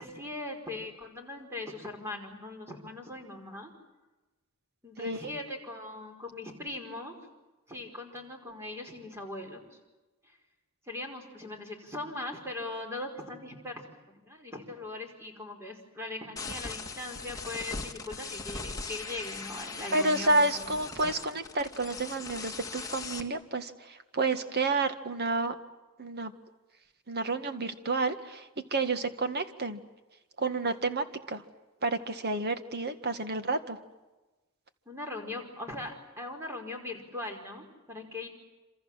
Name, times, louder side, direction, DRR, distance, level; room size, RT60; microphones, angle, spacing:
voice 1, 0.0-3.7 4.8-7.1 7.7-9.8 10.9-13.8 14.1-20.7 34.8-38.3, left 2 dB, 10° right, 3 dB, 5.1 m, -40 dB
voice 2, 5.0-5.3 19.9-25.6 26.0-26.3 27.1-29.8 30.4-31.4 31.8-33.8, right 3 dB, 45° right, 9 dB, 1.9 m, -30 dB
sound 1, 16.4-23.2, left 4 dB, 15° left, 2.0 m, -40 dB
27.5 x 27.0 x 7.6 m, 1.1 s
head